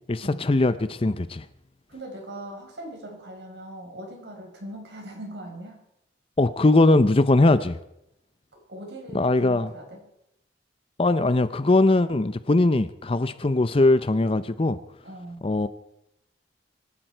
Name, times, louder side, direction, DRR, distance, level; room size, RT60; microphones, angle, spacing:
voice 1, 0.1-1.4 6.4-7.8 9.1-9.7 11.0-14.8 15.4-15.7, left 2 dB, 30° left, 14 dB, 0.6 m, -20 dB
voice 2, 1.9-5.8 8.5-10.0 15.0-15.4, right 1 dB, 70° right, 2 dB, 4.7 m, -40 dB
24.5 x 12.0 x 4.5 m, 0.83 s
head